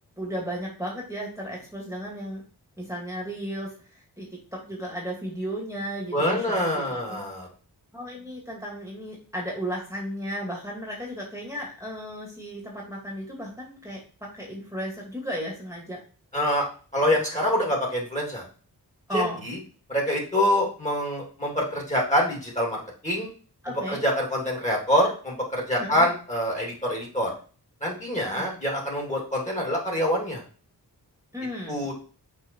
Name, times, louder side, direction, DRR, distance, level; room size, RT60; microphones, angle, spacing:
voice 1, 0.2-2.4 2.8-7.2 7.9-16.0 19.1-19.5 23.6-24.0 25.8-26.1 28.2-28.5 31.3-31.8, equal, 5° right, -3 dB, 2.5 m, -34 dB
voice 2, 6.1-7.5 16.3-16.6 16.9-18.4 19.1-19.6 19.9-23.3 23.9-27.3 27.8-30.4 31.7-31.9, equal, 15° left, -2 dB, 3.0 m, -25 dB
6.2 x 4.3 x 4.7 m, 0.38 s
wide cardioid pair, 55°, 41 cm